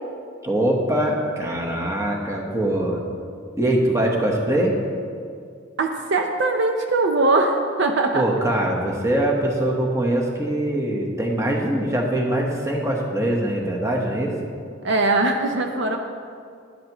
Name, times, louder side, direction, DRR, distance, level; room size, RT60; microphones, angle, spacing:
voice 1, 0.4-3.0 3.6-4.7 8.1-14.3, right 1 dB, 15° right, -1 dB, 1.2 m, -22 dB
voice 2, 5.8-8.2 14.8-16.0, right 2 dB, 60° right, 4 dB, 0.6 m, -21 dB
11.5 x 11.0 x 3.0 m, 2.3 s
head